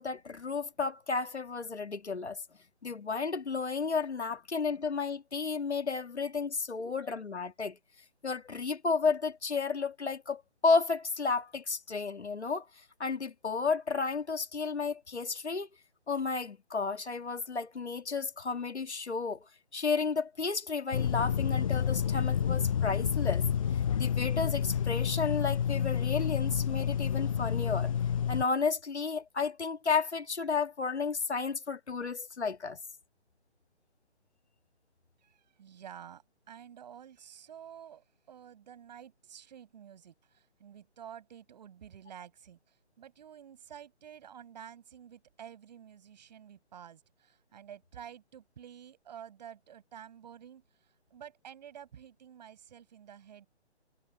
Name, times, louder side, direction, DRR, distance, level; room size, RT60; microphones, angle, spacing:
voice 1, 0.0-2.4 2.8-7.8 8.2-12.7 13.0-15.7 16.1-19.5 19.7-23.5 24.0-27.9 28.3-32.8, left 4 dB, 75° left, 1.8 m, -32 dB
sound 1, 20.9-28.4, left 8 dB, 30° left, 0.9 m, -29 dB
voice 2, 35.2-53.5, right 9 dB, 40° right, 5.9 m, -50 dB
figure-of-eight pair, 145°, 34 cm